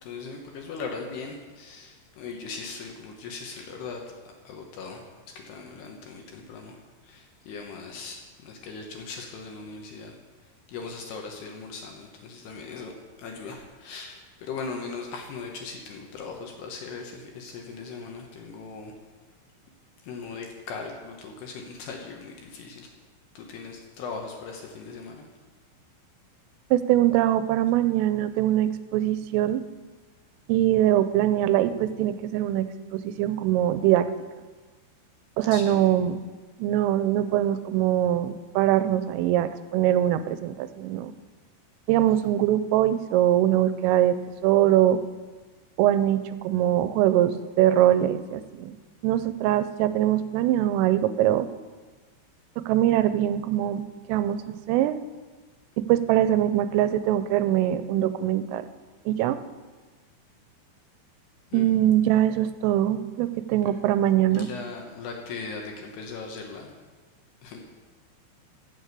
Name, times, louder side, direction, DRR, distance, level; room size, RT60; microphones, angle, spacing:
voice 1, 0.0-4.0 4.4-5.0 5.4-6.8 7.0-10.1 10.7-12.9 13.2-18.9 20.0-22.9 23.3-25.3 35.5-36.0 61.5-61.7 64.3-66.7 67.4-67.6, left 4 dB, 70° left, 2 dB, 2.8 m, -39 dB
voice 2, 26.7-29.6 30.5-34.1 35.4-36.2 36.6-41.1 41.9-44.2 44.4-45.0 45.8-48.8 49.0-51.5 52.6-55.0 55.8-58.7 59.1-59.4 61.5-64.5, right 12 dB, 85° right, 12 dB, 3.2 m, -22 dB
14.0 x 7.1 x 8.2 m, 1.3 s
omnidirectional pair, 5.8 m